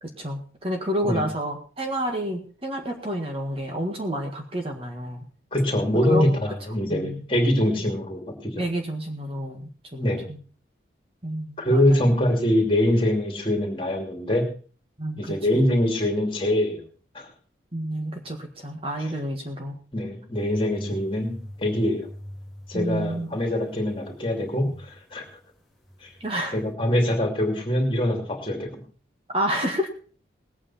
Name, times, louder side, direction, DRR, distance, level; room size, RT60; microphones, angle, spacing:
voice 1, 0.0-5.3 6.1-6.3 6.9-7.2 8.6-10.0 10.3-10.4 11.2-12.1 15.0-15.7 17.7-19.8 22.7-23.4 26.2-26.6 29.3-29.9, equal, 30° right, 2 dB, 1.8 m, -29 dB
voice 2, 5.5-8.6 9.9-10.3 11.6-14.5 15.2-16.8 17.1-17.3 19.9-22.1 22.7-25.3 26.0-26.1 26.5-28.8, left 1 dB, 30° left, 2 dB, 2.8 m, -24 dB
sound 1, 20.3-25.4 25.6-26.7, equal, ahead, 2.3 m, -42 dB
19.5 x 8.8 x 4.3 m, 0.40 s
head